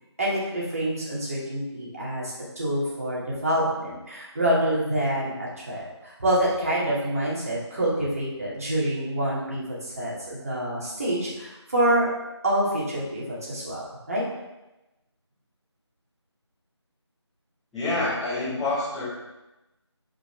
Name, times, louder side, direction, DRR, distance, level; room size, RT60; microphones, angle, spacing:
voice 1, 0.2-12.1 12.4-14.2, right 1 dB, 30° right, -6 dB, 2.2 m, -27 dB
voice 2, 17.7-19.0, left 2 dB, ahead, -19 dB, 2.1 m, -27 dB
11.0 x 5.0 x 3.3 m, 1.0 s
figure-of-eight pair, 170°, 15 cm